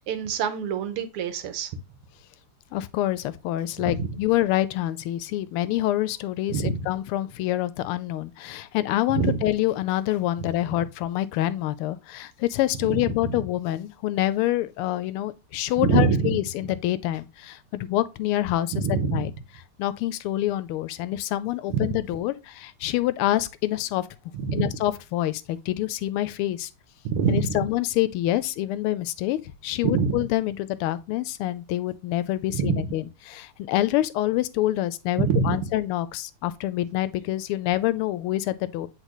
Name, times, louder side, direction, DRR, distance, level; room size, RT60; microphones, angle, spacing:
voice 1, 0.0-1.7 3.8-4.2 6.5-6.9 9.1-9.5 12.8-13.4 15.8-16.4 18.7-19.3 21.7-21.9 24.3-24.7 27.1-27.6 29.8-30.2 32.5-32.9 35.2-35.7, right 6 dB, 90° right, 1.8 m, -25 dB
voice 2, 2.7-18.7 19.1-19.3 19.8-24.1 24.5-26.7 27.3-38.9, left 14 dB, 90° left, 1.5 m, -26 dB
8.2 x 4.0 x 3.0 m
omnidirectional pair, 2.4 m